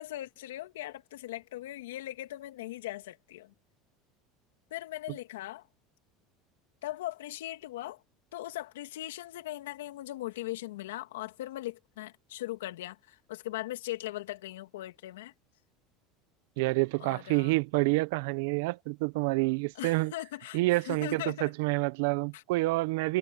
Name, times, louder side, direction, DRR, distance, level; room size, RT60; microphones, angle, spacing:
voice 1, 0.0-3.5 4.7-5.7 6.8-8.0 8.3-15.3 17.0-17.6 19.7-21.5 22.3-22.4, left 15 dB, 90° left, 2.7 m, -39 dB
voice 2, 16.6-20.1 20.5-23.2, right 22 dB, 75° right, 1.1 m, -28 dB
supercardioid pair, 100°, 0 cm